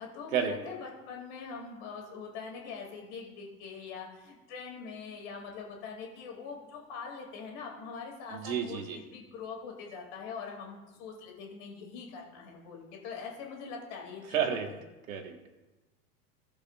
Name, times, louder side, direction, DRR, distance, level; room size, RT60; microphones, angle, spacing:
voice 1, 0.0-14.6, left 5 dB, 50° left, 0 dB, 2.8 m, -43 dB
voice 2, 8.3-9.0 14.3-14.7 15.1-15.5, right 8 dB, 60° right, 5 dB, 1.6 m, -31 dB
17.5 x 7.1 x 2.5 m, 1.1 s
figure-of-eight pair, 90°, 45 cm